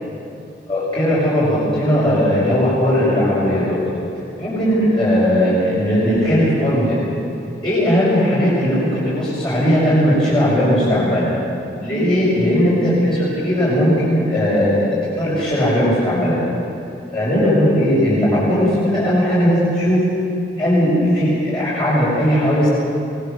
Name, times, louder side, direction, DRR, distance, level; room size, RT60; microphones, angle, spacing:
voice 1, 0.7-3.8 4.4-7.1 7.6-11.3 11.8-14.8 15.1-16.4 17.1-20.0 20.6-22.7, equal, 25° left, -10 dB, 6.1 m, -17 dB
24.5 x 19.5 x 7.0 m, 2.8 s
head